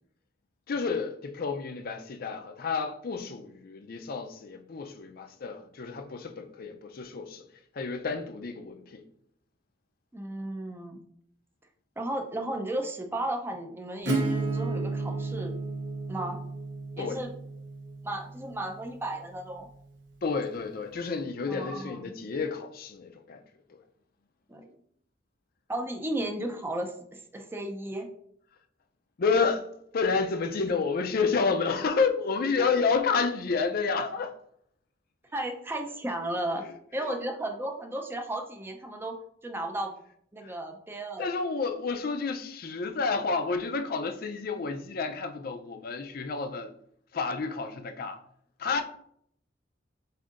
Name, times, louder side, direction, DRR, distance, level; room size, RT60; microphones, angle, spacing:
voice 1, 0.7-7.4 7.7-9.0 17.0-17.2 20.2-23.4 23.7-23.8 29.2-29.7 29.9-34.4 37.0-37.1 40.4-40.5 41.2-46.7 47.1-48.2 48.6-48.8, left 4 dB, 50° left, 0.4 m, -30 dB
voice 2, 10.1-11.0 12.0-15.5 16.1-16.4 17.0-17.3 18.0-19.7 21.5-22.1 24.5-24.8 25.7-28.1 32.6-32.7 35.3-36.6 36.9-39.9 40.3-41.3, right 1 dB, 10° right, 0.5 m, -34 dB
Acoustic guitar / Strum, 14.1-19.6, right 3 dB, 75° right, 0.8 m, -33 dB
7.4 x 2.7 x 2.4 m
head